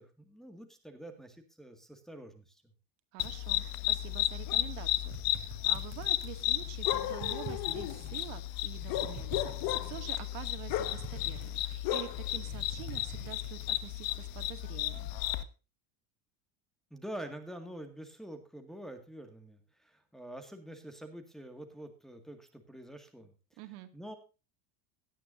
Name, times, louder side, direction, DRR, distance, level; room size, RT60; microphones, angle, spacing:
voice 1, 0.0-2.6 16.9-23.3 23.9-24.1, right 1 dB, ahead, 5 dB, 1.9 m, -46 dB
voice 2, 3.1-15.1 23.6-23.9, right 15 dB, 75° right, 9 dB, 2.3 m, -47 dB
sound 1, 3.2-15.4, left 14 dB, 50° left, 1.4 m, -33 dB
sound 2, 5.1-6.5 6.8-8.3 8.7-10.1 10.6-12.0 12.3-14.1, right 5 dB, 35° right, 4.6 m, -47 dB
17.5 x 12.0 x 2.6 m, 0.32 s
supercardioid pair, 150°, 46 cm